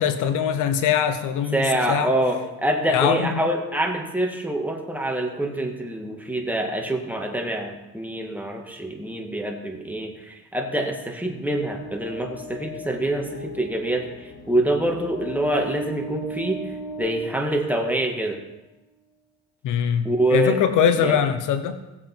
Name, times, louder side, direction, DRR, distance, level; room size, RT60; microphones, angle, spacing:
voice 1, 0.0-2.1 2.9-3.4 19.6-20.1 20.3-21.8, left 8 dB, 85° left, 10 dB, 1.0 m, -22 dB
voice 2, 1.5-16.6 17.0-18.4 20.0-21.2, right 1 dB, 5° right, 2 dB, 2.1 m, -25 dB
sound 1, 11.2-18.2, right 1 dB, 70° left, 3.1 m, -38 dB
17.0 x 7.6 x 4.6 m, 1.0 s
cardioid pair, 90°, 30 cm